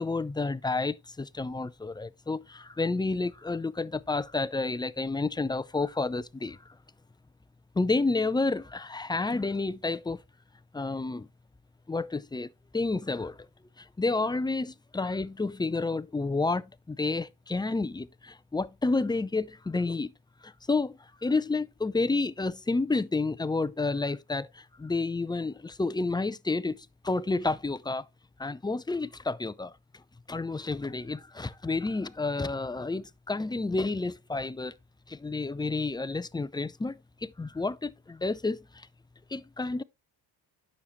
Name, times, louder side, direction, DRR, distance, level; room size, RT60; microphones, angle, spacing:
voice 1, 0.0-6.6 7.8-10.2 10.7-11.3 11.9-13.4 13.8-20.1 20.4-28.0 28.4-29.7 30.3-34.7 35.1-38.9 39.3-39.8, left 3 dB, 10° left, 0.4 m, -30 dB
9.7 x 6.5 x 3.1 m
cardioid pair, 70°, 50 cm